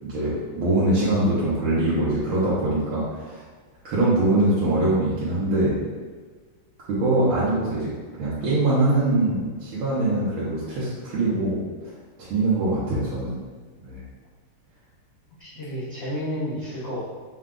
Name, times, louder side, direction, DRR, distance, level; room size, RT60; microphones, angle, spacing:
voice 1, 0.0-3.5 3.8-5.8 6.9-7.9 8.2-11.6 12.3-13.4 13.8-14.0, right 2 dB, 75° right, -9 dB, 1.8 m, -23 dB
voice 2, 15.4-17.0, equal, 50° left, -9 dB, 0.7 m, -31 dB
5.6 x 2.3 x 3.7 m, 1.4 s
omnidirectional pair, 2.4 m